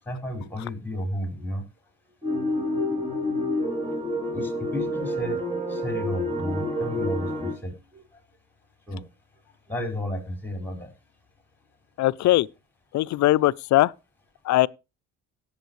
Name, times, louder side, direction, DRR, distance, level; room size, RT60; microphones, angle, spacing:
voice 1, 0.1-1.6 4.3-5.4 5.7-8.0 8.9-9.0 9.7-10.9, left 1 dB, 5° left, 4.7 m, -32 dB
sound 1, 2.2-7.5, left 1 dB, 20° right, 3.1 m, -28 dB
voice 2, 12.0-12.5 12.9-13.9 14.5-14.7, left 16 dB, 70° left, 0.5 m, -20 dB
18.0 x 7.2 x 3.1 m
cardioid pair, 90°, 30 cm